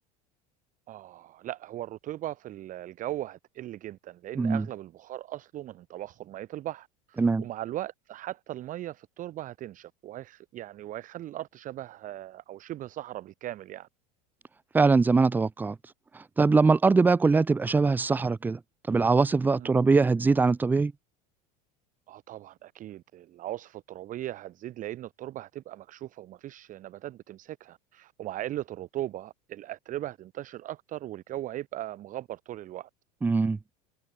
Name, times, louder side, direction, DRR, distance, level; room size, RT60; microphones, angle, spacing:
voice 1, 0.9-13.9 19.6-19.8 22.1-32.9, right 14 dB, 40° right, 0.7 m, -38 dB
voice 2, 14.7-15.8 16.1-18.6 18.9-20.9 33.2-33.6, right 4 dB, 10° right, 0.3 m, -22 dB
hypercardioid pair, 90°, 20 cm